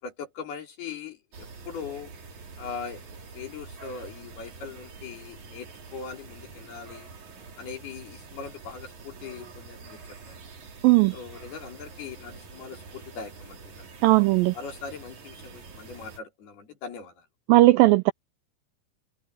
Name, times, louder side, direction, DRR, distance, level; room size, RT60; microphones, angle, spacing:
voice 1, 0.0-2.1 2.6-7.1 7.6-10.0 10.3-10.4 11.1-13.9 14.5-17.3, left 6 dB, 70° left, 5.9 m, -40 dB
sound 1, 1.3-16.2, right 4 dB, 50° right, 4.8 m, -46 dB
voice 2, 14.0-14.5 17.5-18.1, right 19 dB, 85° right, 2.0 m, -17 dB
omnidirectional pair, 4.6 m